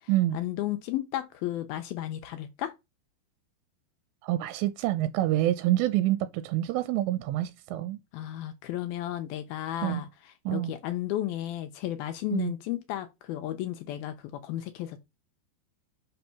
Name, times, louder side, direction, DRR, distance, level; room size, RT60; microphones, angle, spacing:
voice 1, 0.3-2.7 8.1-10.1 10.5-15.0, left 13 dB, 80° left, 2.3 m, -33 dB
voice 2, 4.2-8.0 9.8-10.0 10.5-10.7 12.3-12.5, right 14 dB, 85° right, 2.9 m, -27 dB
6.2 x 5.3 x 5.8 m
omnidirectional pair, 5.0 m